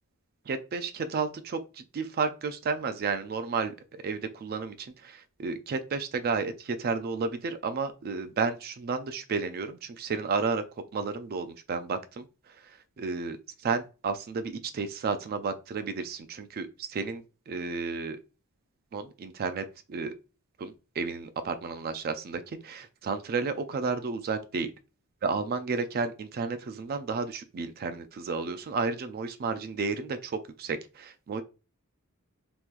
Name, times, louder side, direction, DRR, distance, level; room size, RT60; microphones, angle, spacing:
voice 1, 0.5-10.6 10.9-12.2 13.0-13.4 13.6-18.2 18.9-20.1 20.6-24.7 25.2-31.4, right 4 dB, 45° right, 0.3 m, -32 dB
3.6 x 3.0 x 2.4 m
head